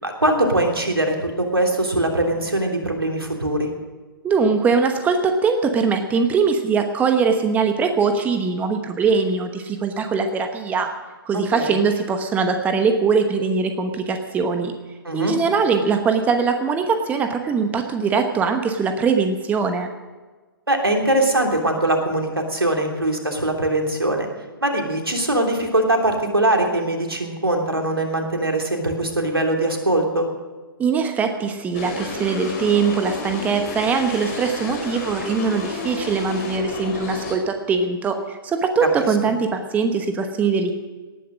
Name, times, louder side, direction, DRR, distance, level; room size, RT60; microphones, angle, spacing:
voice 1, 0.0-3.7 11.3-11.8 15.0-15.3 20.7-24.3 24.6-30.3, right 1 dB, 85° right, 2 dB, 3.1 m, -21 dB
voice 2, 4.2-10.9 11.2-14.7 15.1-19.9 30.8-40.7, right 5 dB, 15° right, 6 dB, 1.0 m, -21 dB
sound 1, 31.7-37.4, left 3 dB, 40° left, 4.7 m, -31 dB
18.5 x 10.0 x 6.3 m, 1.3 s
figure-of-eight pair, 125°, 12 cm